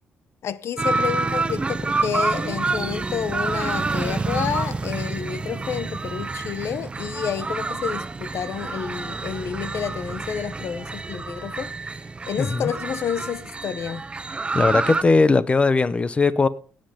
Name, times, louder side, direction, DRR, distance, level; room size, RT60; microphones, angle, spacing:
voice 1, 0.4-11.7 12.3-14.0, left 8 dB, 65° left, 0.8 m, -29 dB
sound 1, 0.8-15.0, right 3 dB, 20° right, 0.5 m, -28 dB
voice 2, 12.4-12.7 14.5-16.5, left 3 dB, 25° left, 0.8 m, -19 dB
17.5 x 7.8 x 3.7 m
cardioid pair, 105°, 5 cm